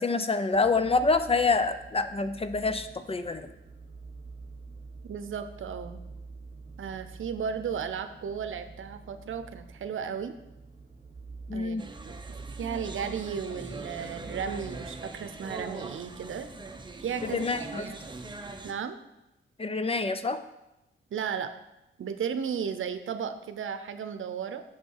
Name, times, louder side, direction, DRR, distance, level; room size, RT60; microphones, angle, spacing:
voice 1, 0.0-3.5 11.5-11.9 17.2-17.8 19.6-20.4, left 3 dB, 30° left, 10 dB, 0.6 m, -27 dB
sound 1, 0.5-15.1, right 4 dB, 40° right, 1.4 m, -47 dB
voice 2, 5.0-6.0 6.8-10.3 11.5-11.8 12.0-12.2 12.6-16.5 17.0-18.0 18.6-19.0 21.1-21.5 22.0-24.6, right 7 dB, 75° right, 10 dB, 0.7 m, -34 dB
sound 2, 11.8-18.7, right 2 dB, 20° right, 0.8 m, -41 dB
8.3 x 6.7 x 4.7 m, 0.92 s
cardioid pair, 100°, 21 cm